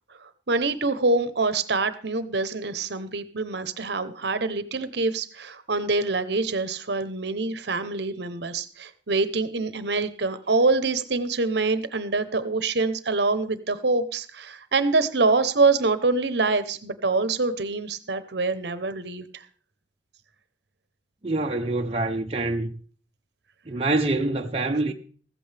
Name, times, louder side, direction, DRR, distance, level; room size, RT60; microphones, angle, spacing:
voice 1, 0.5-19.4, right 3 dB, 65° right, 0.9 m, -25 dB
voice 2, 21.2-22.7 23.7-24.9, right 2 dB, 30° right, 0.7 m, -25 dB
15.0 x 14.0 x 3.4 m
head